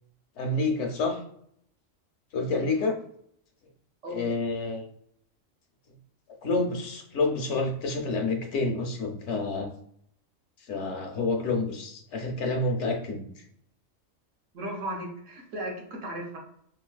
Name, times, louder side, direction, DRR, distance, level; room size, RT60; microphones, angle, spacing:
voice 1, 0.4-1.2 2.3-3.0 4.1-4.9 6.4-9.7 10.7-13.3, left 3 dB, 65° left, 3 dB, 0.8 m, -28 dB
voice 2, 2.4-2.9 4.0-4.3 14.5-16.4, right 1 dB, 70° right, 0 dB, 1.1 m, -36 dB
3.2 x 2.7 x 2.3 m, 0.68 s
omnidirectional pair, 1.4 m